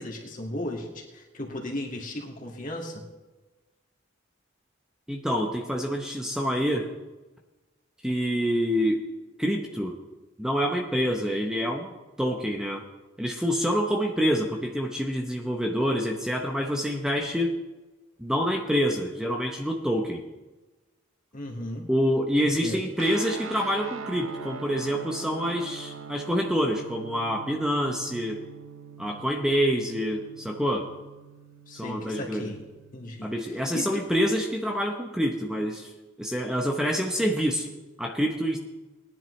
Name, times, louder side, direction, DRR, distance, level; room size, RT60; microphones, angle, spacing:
voice 1, 0.0-3.0 21.3-21.8 22.4-22.8 31.7-32.6 32.9-33.3 33.7-34.0, left 1 dB, 40° left, 0 dB, 2.0 m, -35 dB
voice 2, 5.1-6.9 8.0-9.0 9.4-10.0 10.4-11.9 12.2-12.8 13.2-17.6 18.2-20.2 21.9-28.4 29.0-30.9 31.7-32.5 33.2-35.9 36.2-37.7 38.0-38.6, equal, 5° right, 2 dB, 0.8 m, -27 dB
sound 1, 23.0-33.3, right 5 dB, 85° right, 0.7 m, -42 dB
19.5 x 10.5 x 3.2 m, 1.2 s
head